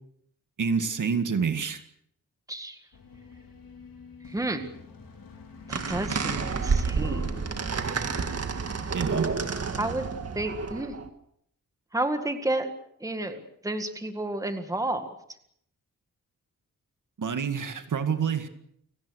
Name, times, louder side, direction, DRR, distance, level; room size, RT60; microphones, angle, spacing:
voice 1, 0.6-1.8 8.9-9.3 17.2-18.5, right 6 dB, 65° right, 8 dB, 2.1 m, -27 dB
voice 2, 2.5-2.8 4.3-4.7 5.7-7.2 9.8-10.1 10.3-10.9 11.9-12.7 13.0-15.1, right 2 dB, 10° right, 7 dB, 1.9 m, -31 dB
sound 1, 2.9-8.2, left 4 dB, 90° left, 4.5 m, -47 dB
sound 2, 5.7-11.1, right 5 dB, 45° right, 1.9 m, -29 dB
30.0 x 18.5 x 6.5 m, 0.70 s
wide cardioid pair, 170°, 33 cm